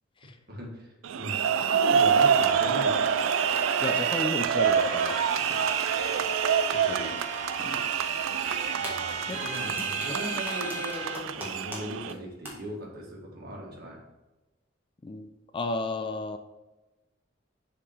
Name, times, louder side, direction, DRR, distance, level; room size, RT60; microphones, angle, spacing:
voice 1, 0.5-3.0 8.8-14.0, equal, 55° right, -2 dB, 1.6 m, -38 dB
sound 1, 1.0-12.1, right 7 dB, 90° right, 0.4 m, -26 dB
sound 2, 1.6-4.2 4.6-11.2, right 2 dB, 35° right, 1.1 m, -37 dB
voice 2, 3.8-5.2 5.5-5.6 6.7-7.2 7.6-7.9 9.3-9.4 9.8-9.9 10.2-10.4 15.0-16.4, left 2 dB, 25° left, 8 dB, 0.4 m, -34 dB
sound 3, 8.6-11.8 12.1-12.2 12.5-12.6, equal, 10° right, 1.5 m, -39 dB
6.9 x 3.7 x 4.7 m, 1.1 s
head